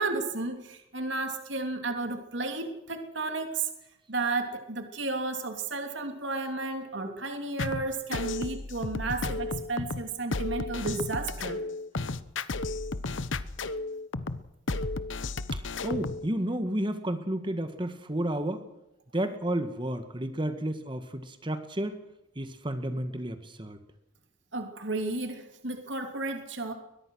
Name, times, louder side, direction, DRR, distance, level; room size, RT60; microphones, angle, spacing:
voice 1, 0.0-3.7 4.1-11.6 24.5-26.7, right 3 dB, 70° right, 5 dB, 3.1 m, -33 dB
sound 1, 7.6-16.3, left 3 dB, 90° left, 1.0 m, -33 dB
voice 2, 15.5-18.6 19.1-22.0 22.4-23.8, right 1 dB, 25° right, 8 dB, 1.7 m, -32 dB
22.5 x 20.0 x 6.4 m, 0.88 s
head